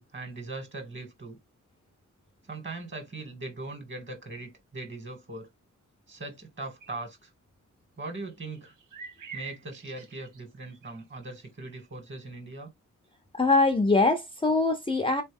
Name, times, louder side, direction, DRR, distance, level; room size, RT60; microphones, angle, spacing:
voice 1, 0.0-1.4 2.5-5.5 6.1-7.3 8.0-8.7 9.3-12.7, right 2 dB, 40° right, 2.0 m, -40 dB
sound 1, 6.8-7.1 8.3-11.3 11.6-11.9 12.2-12.3, right 6 dB, 85° right, 1.0 m, -46 dB
voice 2, 13.3-15.2, left 3 dB, 15° left, 0.6 m, -23 dB
4.0 x 3.1 x 3.4 m
wide cardioid pair, 135°, 31 cm